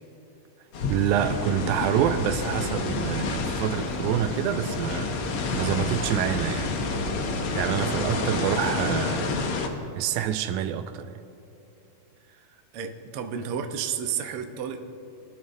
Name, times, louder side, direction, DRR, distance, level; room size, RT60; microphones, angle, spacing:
sound 1, 0.7-9.7, left 3 dB, 65° left, 1.4 m, -29 dB
voice 1, 0.9-6.7 7.5-9.3 10.0-11.2, right 10 dB, 85° right, 8 dB, 2.0 m, -27 dB
voice 2, 12.7-14.8, right 8 dB, 70° right, 5 dB, 1.4 m, -31 dB
20.5 x 12.5 x 2.7 m, 2.8 s
omnidirectional pair, 3.6 m